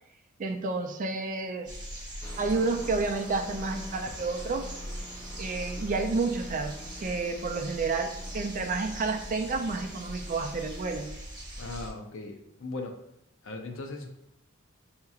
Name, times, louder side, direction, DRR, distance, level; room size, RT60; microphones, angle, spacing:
voice 1, 0.4-1.7 2.4-4.7 5.4-11.1, right 3 dB, 40° right, 6 dB, 0.4 m, -30 dB
sound 1, 1.7-11.9, equal, 20° right, 0.9 m, -40 dB
sound 2, 2.2-11.1, equal, 15° left, 0.5 m, -48 dB
voice 2, 11.6-13.1 13.4-14.1, left 2 dB, 65° left, 3 dB, 0.6 m, -38 dB
6.5 x 2.9 x 2.4 m, 0.82 s
head